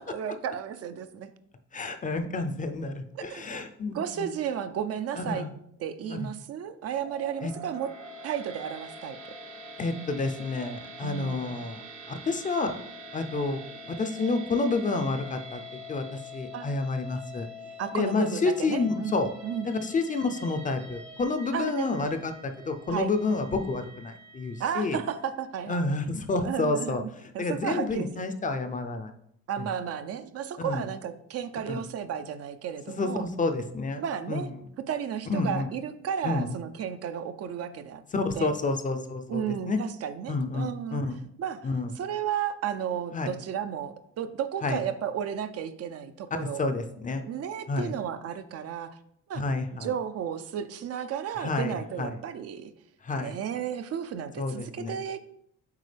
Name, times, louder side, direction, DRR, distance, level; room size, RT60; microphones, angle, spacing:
voice 1, 0.1-1.3 3.2-3.4 3.9-5.4 5.8-7.9 8.2-9.2 11.0-11.5 16.5-16.7 17.8-19.2 19.4-19.7 21.5-22.1 22.9-23.4 24.6-26.0 26.4-27.1 27.3-28.3 29.5-33.3 34.0-34.5 34.9-38.0 38.4-38.6 39.3-41.0 41.4-41.7 41.9-46.6 47.2-49.0 49.3-49.4 49.8-52.7 53.2-55.2, right 8 dB, 50° right, 11 dB, 0.5 m, -33 dB
voice 2, 1.7-4.3 5.2-5.5 6.1-6.3 7.4-7.5 9.8-11.8 12.1-12.8 13.1-13.6 13.9-17.5 17.9-19.3 19.6-25.0 25.7-29.1 29.6-29.7 30.6-30.8 31.7-31.8 32.9-34.5 35.3-35.7 36.2-36.5 38.1-39.8 40.3-41.3 41.6-41.9 43.1-43.3 44.6-44.8 46.3-47.2 47.7-47.9 49.4-49.9 51.4-52.2 53.0-53.4 54.4-55.0, left 3 dB, 25° left, 7 dB, 0.5 m, -29 dB
sound 1, 6.9-25.2, equal, 70° right, 1.2 m, -45 dB
8.3 x 4.5 x 3.3 m, 0.73 s
cardioid pair, 135°, 31 cm